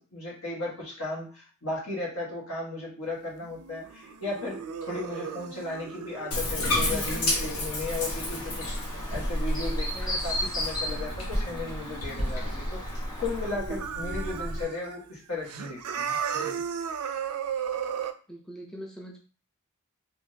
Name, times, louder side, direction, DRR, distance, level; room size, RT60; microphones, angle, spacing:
voice 1, 0.0-8.8 9.1-12.8 13.2-16.6, left 2 dB, 70° left, -3 dB, 1.4 m, -35 dB
sound 1, 3.4-13.0 13.3-15.0 15.3-18.1, right 7 dB, 90° right, 0.4 m, -37 dB
Bathtub (filling or washing), 6.3-14.6, left 1 dB, 85° left, 1.0 m, -31 dB
voice 2, 6.9-7.3 18.3-19.2, equal, 5° left, -1 dB, 0.4 m, -41 dB
Chirp tweet, 8.0-13.5, left 1 dB, 20° left, 0.8 m, -37 dB
3.5 x 2.6 x 2.7 m, 0.39 s
head